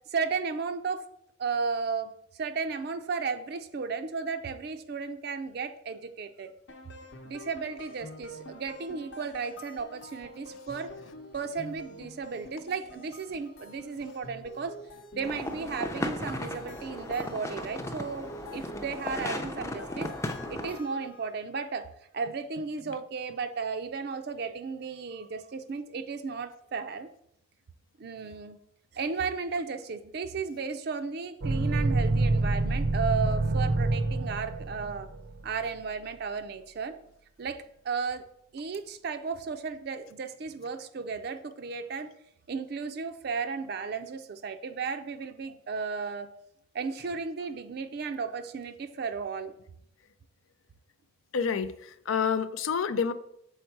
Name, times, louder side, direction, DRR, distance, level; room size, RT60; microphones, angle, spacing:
voice 1, 0.1-1.0 1.4-2.1 2.4-6.5 7.2-10.9 11.3-14.8 15.1-20.1 20.5-21.9 22.1-27.1 28.0-28.6 28.9-35.1 35.4-37.0 37.4-38.2 38.5-42.1 42.5-46.3 46.7-49.5, right 5 dB, 50° right, 9 dB, 0.4 m, -34 dB
sound 1, 6.7-21.4, left 1 dB, 65° left, 0.8 m, -47 dB
sound 2, 15.2-20.8, left 1 dB, 15° left, 0.5 m, -36 dB
sound 3, 31.4-35.5, right 2 dB, 85° right, 0.7 m, -27 dB
voice 2, 51.3-51.7 52.1-53.1, left 6 dB, 85° left, 13 dB, 0.4 m, -27 dB
6.4 x 4.4 x 4.5 m, 0.74 s
head